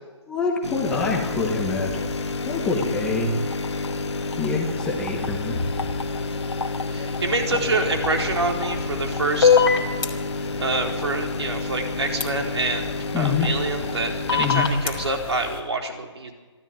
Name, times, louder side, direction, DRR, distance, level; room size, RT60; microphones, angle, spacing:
voice 1, 0.3-2.0 2.5-3.3 4.4-5.6 13.1-13.5 14.4-14.7, left 4 dB, 5° left, -1 dB, 1.0 m, -25 dB
sound 1, 0.6-14.6, left 3 dB, 65° left, 1.6 m, -30 dB
sound 2, 0.8-15.6, left 4 dB, 20° left, 1.8 m, -36 dB
voice 2, 6.8-9.6 10.6-12.9 13.2-16.3, right 3 dB, 60° right, 2 dB, 4.2 m, -26 dB
sound 3, 9.4-10.1 12.2-12.3 14.3-14.9, left 6 dB, 50° left, 3.3 m, -18 dB
26.0 x 13.5 x 9.2 m, 1.4 s
hypercardioid pair, 175°, 16 cm